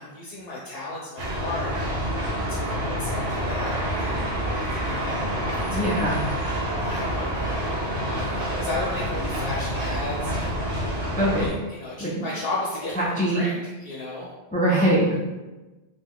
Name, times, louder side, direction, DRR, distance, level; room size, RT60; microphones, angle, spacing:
voice 1, 0.0-6.0 6.9-11.0 11.3-12.9 13.3-14.3, left 2 dB, 70° left, -4 dB, 0.8 m, -35 dB
sound 1, 1.2-11.5, equal, 85° right, 1.0 m, -27 dB
voice 2, 5.7-6.3 11.1-11.5 12.0-12.3 13.0-13.4 14.5-15.2, right 1 dB, 15° left, -5 dB, 0.3 m, -22 dB
2.7 x 2.2 x 3.5 m, 1.1 s
omnidirectional pair, 1.1 m